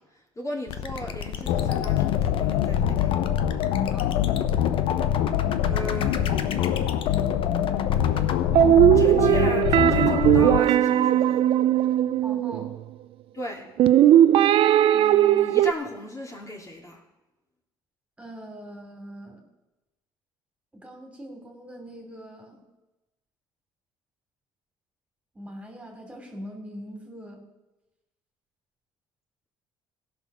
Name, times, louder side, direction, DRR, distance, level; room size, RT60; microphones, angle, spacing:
voice 1, 0.0-3.3 4.9-5.0 5.6-6.4 8.9-11.5 13.3-13.7 14.9-17.0, left 1 dB, 30° left, -1 dB, 3.1 m, -36 dB
sound 1, 0.7-8.4, left 8 dB, 60° left, 1.0 m, -34 dB
sound 2, 1.5-10.6, left 10 dB, 85° left, 0.7 m, -24 dB
sound 3, 8.5-12.8 13.8-15.7, right 12 dB, 65° right, 0.5 m, -18 dB
voice 2, 12.2-12.7 18.2-19.4 20.7-22.6 25.3-27.5, equal, 10° right, 2 dB, 3.0 m, -42 dB
16.0 x 5.9 x 6.2 m, 1.0 s
supercardioid pair, 75°, 10 cm